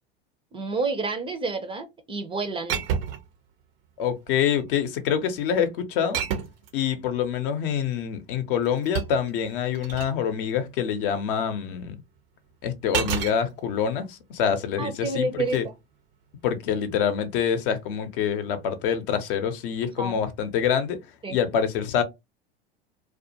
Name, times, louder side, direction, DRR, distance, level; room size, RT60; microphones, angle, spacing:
voice 1, 0.5-2.8 14.8-15.7 20.0-20.2 21.2-21.4, right 3 dB, 15° right, 0.5 m, -29 dB
sound 1, 2.7-3.3 4.3-4.7 6.1-6.7 8.4-10.2 12.9-13.4 15.4-15.6, right 8 dB, 70° right, 0.6 m, -30 dB
voice 2, 4.0-6.2 6.7-12.0 12.6-15.6 16.4-21.0 21.3-22.0, left 8 dB, 60° left, 0.7 m, -26 dB
2.3 x 2.2 x 2.6 m
hypercardioid pair, 90°, 30 cm